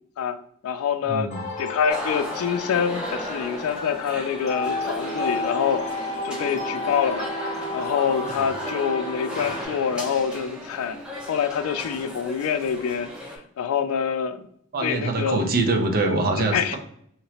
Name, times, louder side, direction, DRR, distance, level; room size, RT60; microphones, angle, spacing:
voice 1, 0.2-1.3 1.6-7.3 7.7-11.0 11.3-13.1 13.6-14.4 14.8-15.5 16.4-16.8, left 7 dB, 75° left, 0.3 m, -26 dB
voice 2, 1.1-1.4 14.7-16.8, right 2 dB, 45° right, 0.5 m, -24 dB
sound 1, 1.3-9.6, left 2 dB, 30° left, 0.7 m, -32 dB
sound 2, 1.9-13.4, equal, 5° right, 0.7 m, -36 dB
3.0 x 2.8 x 2.8 m
head